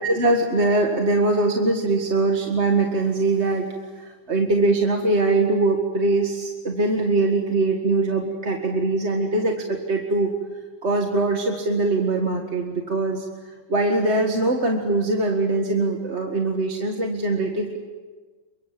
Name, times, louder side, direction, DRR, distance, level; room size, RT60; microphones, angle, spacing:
voice 1, 0.0-3.7 4.0-10.3 10.8-17.8, right 2 dB, 35° right, 2 dB, 2.0 m, -22 dB
28.5 x 24.5 x 7.7 m, 1.4 s
omnidirectional pair, 2.2 m